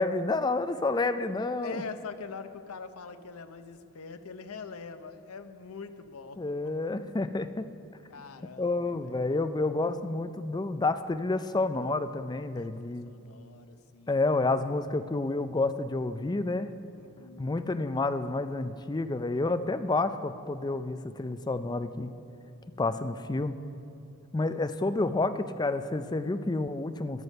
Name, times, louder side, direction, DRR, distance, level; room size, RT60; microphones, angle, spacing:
voice 1, 0.0-1.8 6.4-7.7 8.6-13.1 14.1-16.7 17.4-22.1 22.8-23.5 24.3-27.2, left 2 dB, 20° left, 10 dB, 0.4 m, -29 dB
voice 2, 1.4-6.4 8.1-9.4 12.5-14.2 16.9-17.6, left 4 dB, 75° left, 9 dB, 0.7 m, -44 dB
14.5 x 11.0 x 5.4 m, 2.7 s
head